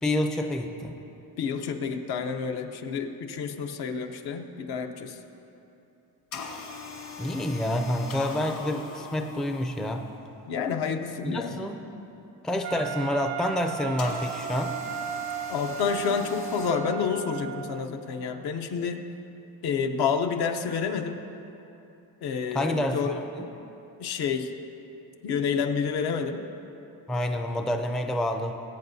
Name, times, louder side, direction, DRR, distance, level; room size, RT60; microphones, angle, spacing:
voice 1, 0.0-1.0 7.2-10.0 11.2-11.8 12.4-14.7 22.5-23.0 23.4-23.5 27.1-28.6, left 1 dB, ahead, 4 dB, 0.4 m, -28 dB
voice 2, 1.4-5.2 10.5-11.6 15.5-19.0 19.6-21.2 22.2-23.1 24.0-24.5 25.2-26.4, left 6 dB, 75° left, 5 dB, 0.9 m, -29 dB
sound 1, 6.3-10.2 14.0-16.7, left 4 dB, 55° left, 1.6 m, -41 dB
Wind instrument woodwind instrument, 12.6-17.9, right 9 dB, 75° right, 0.6 m, -35 dB
21.0 x 8.5 x 2.7 m, 2.9 s
cardioid pair, 145°, 39 cm